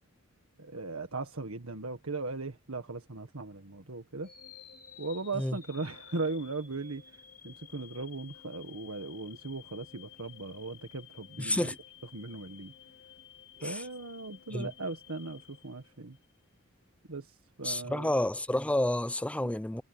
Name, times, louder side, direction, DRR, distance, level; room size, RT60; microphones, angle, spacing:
voice 1, 0.6-4.3 5.0-11.7 12.1-12.7 13.6-16.2 17.1-18.1, right 3 dB, 85° right, 1.7 m, -38 dB
sound 1, 4.2-16.4, left 10 dB, 45° left, 3.6 m, -53 dB
voice 2, 11.4-11.8 13.6-13.8 14.5-14.7 17.6-19.8, left 1 dB, 5° left, 0.5 m, -30 dB
head